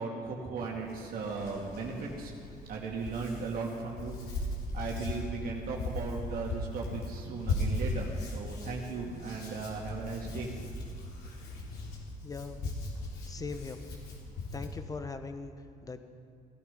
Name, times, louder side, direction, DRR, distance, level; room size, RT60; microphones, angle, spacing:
voice 1, 0.0-2.3 2.7-4.4 4.7-10.5, right 4 dB, 60° right, -2 dB, 2.3 m, -37 dB
Hands, 0.6-14.7, left 2 dB, 70° left, 3.8 m, -38 dB
voice 2, 12.2-12.6 13.3-13.8 14.5-15.5 15.8-16.0, left 4 dB, 20° left, 9 dB, 1.0 m, -40 dB
17.0 x 13.0 x 5.4 m, 2.3 s
cardioid pair, 110°, 17 cm